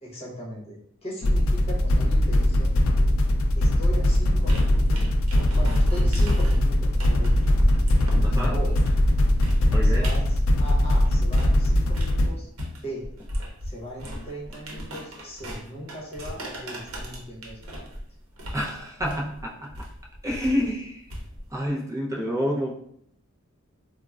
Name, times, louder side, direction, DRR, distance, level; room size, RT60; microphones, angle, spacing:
voice 1, 0.0-2.7 3.5-5.1 5.5-7.6 8.3-8.8 9.8-13.0 13.6-17.8, equal, 30° left, -5 dB, 0.9 m, -38 dB
sound 1, 1.2-12.3, left 1 dB, 65° left, 0.4 m, -21 dB
sound 2, 4.2-11.6 11.9-21.6, equal, 85° right, 0.7 m, -34 dB
voice 2, 8.2-8.6 9.7-10.1 18.5-19.9 20.2-21.0 21.5-22.7, equal, 15° right, -3 dB, 0.5 m, -28 dB
3.7 x 2.0 x 2.3 m, 0.68 s
head